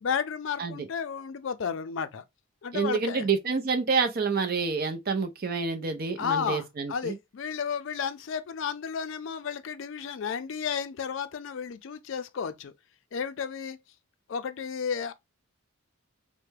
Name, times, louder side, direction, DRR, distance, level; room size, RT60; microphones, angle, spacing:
voice 1, 0.0-2.2 2.6-3.3 6.2-12.7 13.1-13.8 14.3-15.1, left 6 dB, 60° left, 0.4 m, -32 dB
voice 2, 2.7-7.2, right 5 dB, 45° right, 0.6 m, -28 dB
3.3 x 2.1 x 3.2 m
head